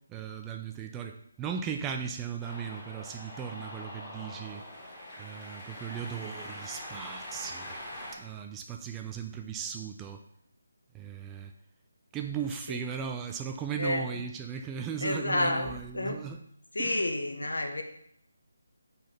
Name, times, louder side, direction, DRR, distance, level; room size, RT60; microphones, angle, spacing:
voice 1, 0.1-4.6 5.2-7.8 8.1-10.2 10.9-11.5 12.1-16.4 16.8-17.1, right 7 dB, 10° right, 4 dB, 0.3 m, -37 dB
Cheering, 2.4-8.2, left 1 dB, 10° left, 1.6 m, -43 dB
voice 2, 13.8-14.3 15.0-16.2 16.7-17.8, left 1 dB, 70° left, 4 dB, 0.9 m, -30 dB
4.7 x 4.0 x 5.5 m, 0.70 s
figure-of-eight pair, 150°, 0 cm